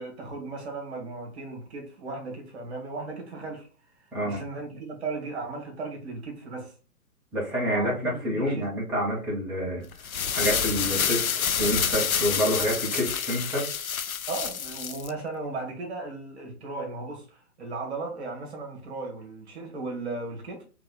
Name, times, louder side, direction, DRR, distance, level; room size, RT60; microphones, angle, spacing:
voice 1, 0.0-3.7 4.0-6.7 7.7-8.0 8.2-8.7 14.3-20.6, right 3 dB, 45° right, 1.7 m, -36 dB
voice 2, 7.3-9.8 10.3-13.7, equal, 5° right, 1.3 m, -28 dB
sound 1, 9.9-15.1, left 7 dB, 70° left, 0.6 m, -28 dB
3.7 x 3.4 x 3.8 m
figure-of-eight pair, 130°, 45 cm